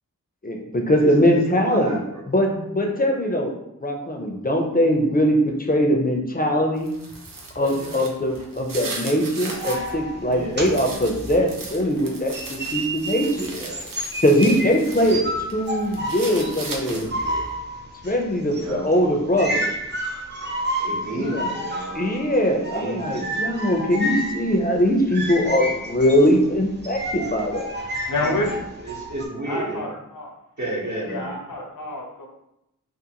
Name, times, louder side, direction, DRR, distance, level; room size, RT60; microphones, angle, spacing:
voice 1, 0.4-2.0 2.3-3.5 3.8-6.9 7.6-13.5 14.2-15.2 15.5-17.1 18.0-19.7 21.2-21.5 21.9-27.7, equal, 30° left, 1 dB, 0.4 m, -21 dB
voice 2, 0.9-2.2 7.7-8.0 10.3-10.6 13.4-13.8 14.6-14.9 16.9-17.4 18.5-18.9 20.8-22.1 22.5-23.5 28.8-29.8 30.6-31.3, right 1 dB, 60° right, -4 dB, 0.9 m, -32 dB
sound 1, 6.8-9.9 10.3-15.2 15.5-17.3, right 3 dB, 80° right, 0.6 m, -37 dB
sound 2, 9.4-12.0 12.3-29.3, right 1 dB, 35° right, 0.5 m, -31 dB
voice 3, 27.9-28.7 29.4-30.4 31.0-32.3, left 1 dB, 80° left, 1 dB, 0.6 m, -28 dB
2.5 x 2.5 x 2.7 m, 0.84 s
wide cardioid pair, 55°, 33 cm